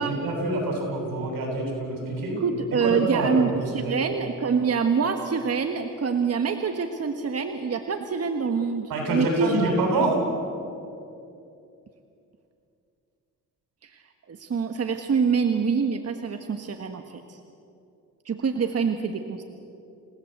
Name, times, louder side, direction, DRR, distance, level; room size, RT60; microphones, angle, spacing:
voice 1, 0.0-2.4 2.8-4.0 8.9-10.1, right 2 dB, 85° right, 1 dB, 8.0 m, -26 dB
voice 2, 2.3-9.7 13.8-14.0 14.3-17.4 18.2-19.4, right 5 dB, 45° right, 6 dB, 1.5 m, -26 dB
29.0 x 17.5 x 8.1 m, 2.7 s
cardioid pair, 90°, 34 cm